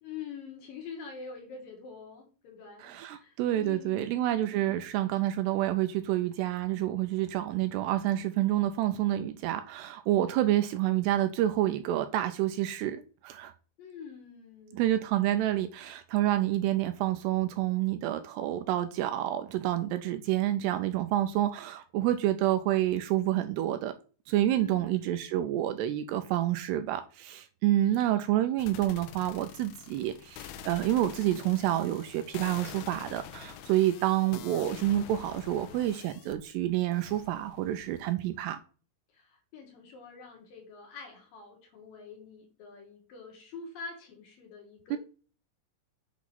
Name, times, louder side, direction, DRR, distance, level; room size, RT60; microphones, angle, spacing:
voice 1, 0.0-4.8 13.8-14.9 24.5-25.2 27.9-28.4 39.1-45.0, left 5 dB, 60° left, 3.1 m, -46 dB
voice 2, 2.9-13.5 14.7-23.9 24.3-38.6 44.9-45.0, right 13 dB, 80° right, 2.5 m, -28 dB
sound 1, 28.6-36.4 36.9-38.1, left 9 dB, 80° left, 2.4 m, -46 dB
8.2 x 3.6 x 5.9 m
omnidirectional pair, 5.1 m